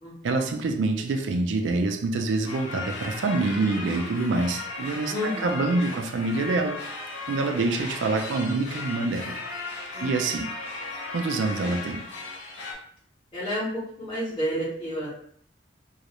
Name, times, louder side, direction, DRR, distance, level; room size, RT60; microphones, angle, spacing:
voice 1, 0.2-6.8 7.3-9.4 10.0-10.8 11.1-12.0, right 3 dB, 80° right, 0.4 m, -26 dB
sound 1, 2.4-12.7, left 3 dB, 65° left, 0.7 m, -36 dB
voice 2, 5.1-5.6 7.5-7.6 9.9-10.1 13.3-13.7 14.0-15.1, equal, 30° left, 0.9 m, -30 dB
2.4 x 2.1 x 2.8 m
head